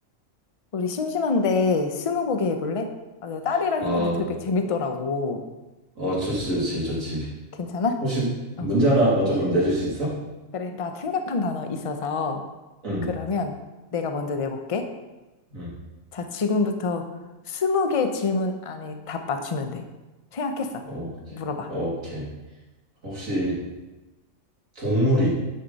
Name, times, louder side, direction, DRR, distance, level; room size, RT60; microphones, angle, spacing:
voice 1, 0.7-2.9 3.2-5.4 7.6-8.0 8.6-8.7 10.5-12.4 13.0-13.5 13.9-14.9 16.1-17.0 17.5-19.8 20.3-20.8 21.3-21.7, left 4 dB, 30° left, 6 dB, 0.7 m, -26 dB
voice 2, 3.8-4.2 6.0-7.3 8.0-8.3 8.6-10.1 12.8-13.1 15.5-15.7 20.9-21.1 21.7-22.2 23.0-23.6 24.7-25.3, right 1 dB, 75° right, -6 dB, 3.3 m, -24 dB
10.0 x 6.5 x 4.1 m, 1.1 s
omnidirectional pair, 1.4 m